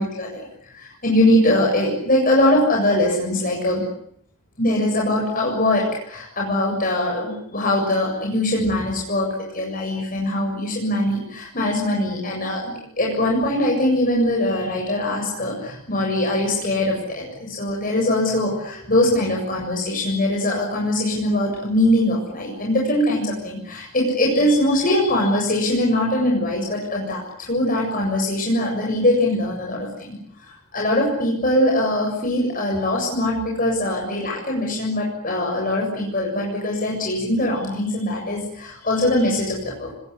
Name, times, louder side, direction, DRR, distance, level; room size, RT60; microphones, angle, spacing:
voice 1, 0.0-3.8 4.6-30.1 30.4-39.9, left 1 dB, 40° left, -2 dB, 7.5 m, -22 dB
25.5 x 21.0 x 9.9 m, 0.71 s
head